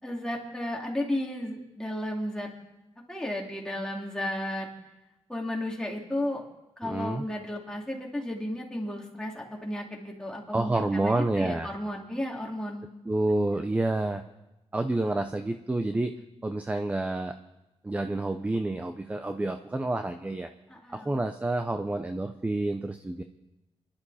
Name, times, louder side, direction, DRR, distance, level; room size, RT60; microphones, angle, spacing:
voice 1, 0.0-2.5 3.1-4.7 5.3-6.4 6.8-12.9 20.7-21.2, left 1 dB, 5° left, -1 dB, 2.9 m, -33 dB
voice 2, 6.8-7.2 10.5-11.7 13.1-14.2 14.7-16.1 16.4-17.4 17.8-20.5 20.9-23.2, right 2 dB, 15° right, 7 dB, 0.7 m, -28 dB
29.5 x 11.5 x 4.2 m, 0.98 s
wide cardioid pair, 145°, 11 cm